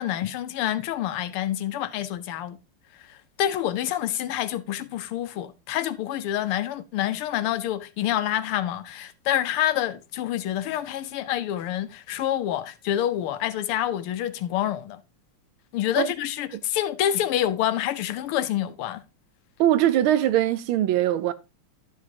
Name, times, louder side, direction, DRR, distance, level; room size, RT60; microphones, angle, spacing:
voice 1, 0.0-2.6 3.1-15.0 15.7-19.0, left 12 dB, 85° left, 1.7 m, -27 dB
voice 2, 19.6-21.3, right 12 dB, 75° right, 1.5 m, -21 dB
12.0 x 7.5 x 2.8 m
omnidirectional pair, 2.4 m